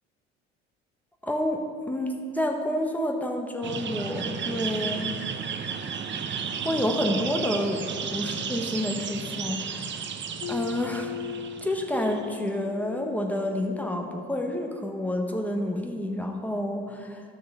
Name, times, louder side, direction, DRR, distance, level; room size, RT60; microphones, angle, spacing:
voice 1, 1.2-1.6 1.9-5.1 6.6-10.1 10.5-11.1 11.6-17.2, left 1 dB, 5° left, 2 dB, 1.3 m, -29 dB
sound 1, 3.6-12.4, right 6 dB, 40° right, 0.8 m, -33 dB
sound 2, 10.4-15.1, left 9 dB, 65° left, 0.7 m, -39 dB
12.5 x 6.4 x 4.3 m, 2.3 s
hypercardioid pair, 60°, 30 cm